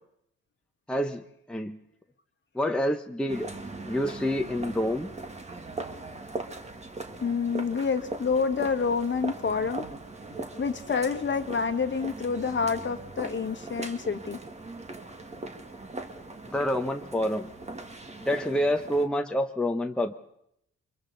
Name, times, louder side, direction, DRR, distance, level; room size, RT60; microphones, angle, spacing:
voice 1, 0.9-1.8 2.5-3.5 3.8-5.1 16.5-17.5 18.2-20.1, equal, 5° left, 3 dB, 1.1 m, -27 dB
sound 1, 3.3-19.1, right 2 dB, 20° right, 1.9 m, -40 dB
voice 2, 7.2-9.8 10.6-14.4, left 5 dB, 40° left, 7 dB, 1.7 m, -28 dB
28.0 x 23.5 x 4.1 m, 0.75 s
cardioid pair, 90°, 30 cm